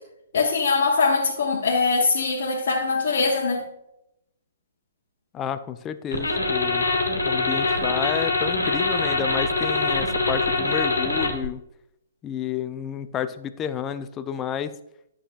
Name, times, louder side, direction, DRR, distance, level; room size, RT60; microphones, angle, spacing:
voice 1, 0.3-3.6, left 4 dB, 55° left, 1.0 m, -22 dB
voice 2, 5.3-6.8 7.2-11.6 12.2-14.8, left 8 dB, 20° left, 0.4 m, -30 dB
sound 1, 6.1-11.5, left 3 dB, 90° left, 1.3 m, -24 dB
11.0 x 6.3 x 2.5 m
figure-of-eight pair, 125°, 0 cm